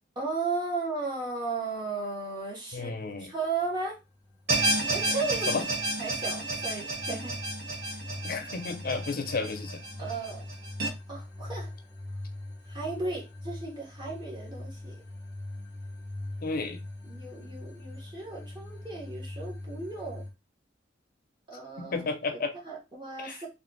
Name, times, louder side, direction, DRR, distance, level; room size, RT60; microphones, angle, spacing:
voice 1, 0.1-2.9 3.2-3.9 4.9-5.6 6.0-7.3 10.0-10.4 11.1-11.7 12.7-15.0 17.0-20.2 21.5-22.1 22.3-23.5, right 3 dB, 25° right, 1.4 m, -35 dB
voice 2, 2.7-3.3 5.5-5.7 8.2-9.8 16.4-16.8 21.8-22.5 23.2-23.4, left 4 dB, 55° left, 0.6 m, -32 dB
sound 1, 4.0-20.3, left 1 dB, 15° left, 0.9 m, -42 dB
sound 2, 4.5-10.9, right 1 dB, 60° right, 0.9 m, -31 dB
3.4 x 2.5 x 3.8 m
head